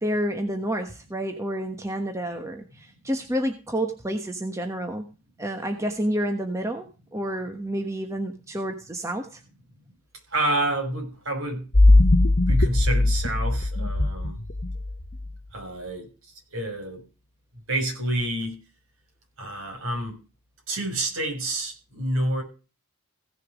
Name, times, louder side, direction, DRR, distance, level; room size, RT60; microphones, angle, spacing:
voice 1, 0.0-5.1 5.4-6.8 7.1-9.4, right 1 dB, 15° right, 5 dB, 1.2 m, -29 dB
voice 2, 10.3-11.9 12.5-14.4 15.5-17.0 17.7-18.6 19.4-20.2 20.7-22.4, right 1 dB, 65° right, 1 dB, 5.9 m, -29 dB
sound 1, 11.7-15.3, left 2 dB, 45° left, 1.0 m, -19 dB
16.5 x 6.7 x 5.0 m, 0.33 s
head